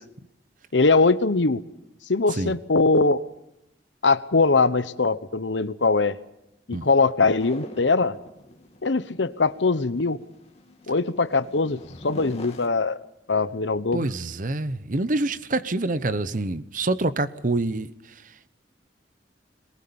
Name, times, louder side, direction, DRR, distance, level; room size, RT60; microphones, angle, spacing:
voice 1, 0.7-1.6 2.1-3.2 4.0-6.2 6.7-8.2 8.8-10.2 10.9-13.0 13.3-14.1, left 3 dB, 80° left, 1.0 m, -21 dB
sound 1, 7.4-12.7, left 1 dB, 35° left, 2.5 m, -44 dB
voice 2, 13.9-17.9, right 2 dB, 45° right, 0.9 m, -26 dB
22.5 x 19.5 x 7.1 m
head